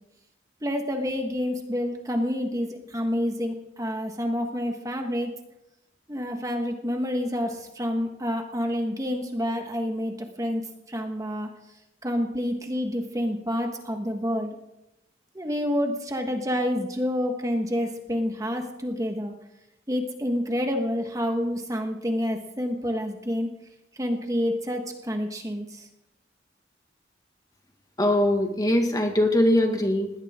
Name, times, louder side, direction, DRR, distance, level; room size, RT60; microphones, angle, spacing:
voice 1, 0.6-5.3 6.1-11.5 12.0-14.6 15.3-19.3 19.9-23.5 23.9-25.9, equal, 20° right, 4 dB, 1.5 m, -28 dB
voice 2, 28.0-30.1, left 1 dB, 20° left, 4 dB, 1.9 m, -21 dB
20.5 x 17.0 x 3.7 m, 0.88 s
head